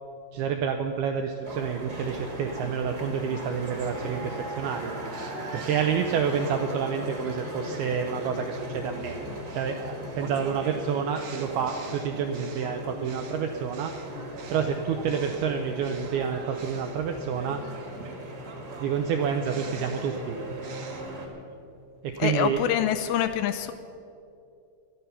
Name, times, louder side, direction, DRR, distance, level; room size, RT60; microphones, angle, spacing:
voice 1, 0.3-4.9 5.5-9.2 9.5-14.0 14.5-17.6 18.8-20.4 22.0-22.6, right 7 dB, 85° right, 5 dB, 2.2 m, -28 dB
sound 1, 1.4-21.3, right 1 dB, 40° right, 1.4 m, -38 dB
sound 2, 2.6-6.7 7.2-15.5 15.8-21.0, right 4 dB, 65° right, 1.8 m, -47 dB
voice 2, 22.2-23.7, left 10 dB, 85° left, 10 dB, 2.6 m, -25 dB
18.5 x 12.5 x 5.7 m, 2.6 s
omnidirectional pair, 5.3 m